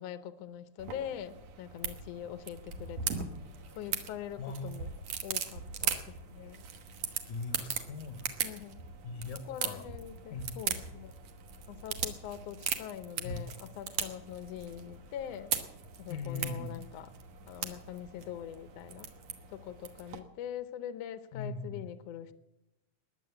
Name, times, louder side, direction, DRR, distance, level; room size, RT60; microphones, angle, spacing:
voice 1, 0.0-3.3 3.8-4.9 5.2-6.6 8.4-8.8 9.5-11.2 11.7-15.6 16.0-17.1 17.5-19.1 19.5-22.3, left 10 dB, 70° left, 11 dB, 1.8 m, -43 dB
sound 1, 0.8-20.2, right 7 dB, 65° right, 2.4 m, -39 dB
voice 2, 4.4-4.7 7.3-8.5 9.0-9.9 10.3-10.6 13.2-13.4 16.1-16.8 21.3-21.9, left 3 dB, 85° left, 9 dB, 2.6 m, -40 dB
20.5 x 8.2 x 7.8 m, 0.92 s
omnidirectional pair, 3.4 m